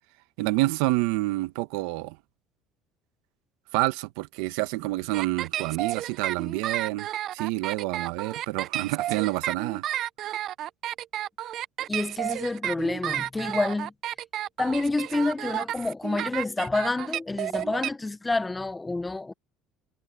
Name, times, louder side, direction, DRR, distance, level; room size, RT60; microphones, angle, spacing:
voice 1, 0.4-2.2 3.7-9.8, right 20 dB, 90° right, 0.9 m, -28 dB
sound 1, 5.1-17.9, right 12 dB, 50° right, 0.4 m, -32 dB
voice 2, 11.9-13.9 14.6-19.3, left 2 dB, 10° left, 0.6 m, -28 dB
cardioid pair, 130°, 0 cm